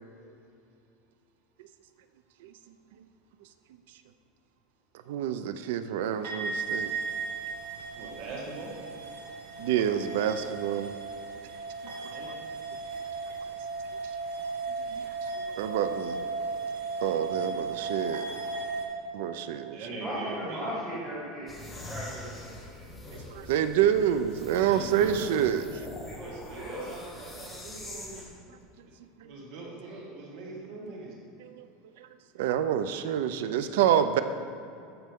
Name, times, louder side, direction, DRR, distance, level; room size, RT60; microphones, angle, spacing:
voice 1, 5.1-6.9 9.6-10.9 14.9-15.0 15.5-16.2 17.0-18.3 19.1-19.8 23.3-25.6 32.4-34.2, right 10 dB, 70° right, 11 dB, 0.4 m, -27 dB
sound 1, 6.2-18.9, right 4 dB, 85° right, 1.5 m, -36 dB
voice 2, 7.9-8.7 11.8-12.4 19.1-19.2 19.7-20.9 24.5-25.4 26.2-28.5 28.8-28.9 29.2-31.2 32.8-32.9, right 2 dB, 50° right, -1 dB, 1.8 m, -42 dB
voice 3, 20.0-23.2 26.0-26.8, equal, 15° right, -10 dB, 1.9 m, -38 dB
sound 2, 21.5-28.2, left 1 dB, 10° left, 1.3 m, -44 dB
13.5 x 5.5 x 3.6 m, 2.6 s
supercardioid pair, 175°, 0 cm